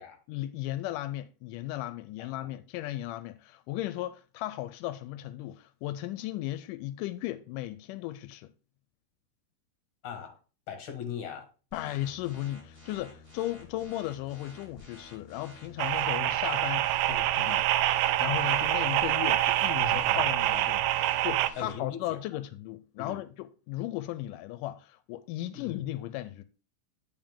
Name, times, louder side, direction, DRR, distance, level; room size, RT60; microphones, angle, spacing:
voice 1, 0.3-8.5 11.7-17.7 18.2-26.4, left 14 dB, 85° left, 2.1 m, -36 dB
voice 2, 2.2-2.5 10.0-10.4 10.7-11.5 18.7-18.8 19.8-20.2 21.6-22.2 23.0-23.2 25.5-25.8, left 8 dB, 50° left, 2.1 m, -40 dB
sound 1, 11.7-21.7, left 1 dB, 10° left, 4.4 m, -52 dB
sound 2, 15.8-21.5, right 14 dB, 90° right, 2.2 m, -26 dB
8.8 x 5.4 x 3.6 m
omnidirectional pair, 3.7 m